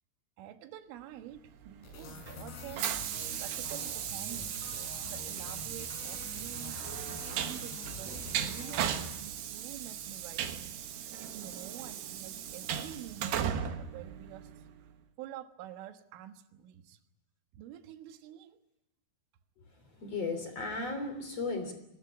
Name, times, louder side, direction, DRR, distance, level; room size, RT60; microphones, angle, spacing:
voice 1, 0.4-2.9 3.4-4.8 5.0-6.9 7.3-10.8 11.2-14.5 14.8-14.9 15.2-17.0 17.5-18.6, right 12 dB, 85° right, 8 dB, 3.9 m, -48 dB
Train, 1.6-14.8, right 9 dB, 65° right, 3.4 m, -37 dB
sound 1, 1.8-9.4, left 4 dB, 90° left, 8.8 m, -46 dB
voice 2, 19.8-21.7, left 3 dB, 35° left, 8 dB, 3.9 m, -35 dB
23.5 x 20.0 x 9.6 m, 0.83 s
omnidirectional pair, 5.5 m